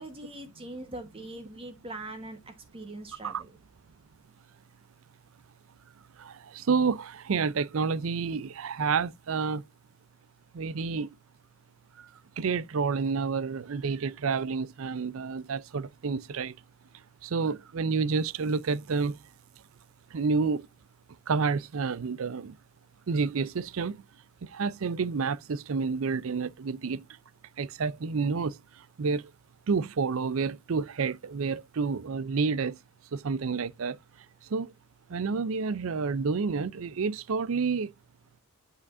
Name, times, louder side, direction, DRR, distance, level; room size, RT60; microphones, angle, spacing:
voice 1, 0.0-3.5, right 2 dB, 25° right, 1.1 m, -42 dB
voice 2, 6.2-9.6 10.5-11.1 12.0-12.1 12.4-16.5 17.2-19.2 20.1-20.7 21.3-22.6 23.1-24.0 24.4-27.1 27.6-29.3 29.7-32.8 33.1-34.0 34.5-34.7 35.1-37.9, right 5 dB, 65° right, 0.5 m, -29 dB
8.4 x 5.1 x 2.5 m
head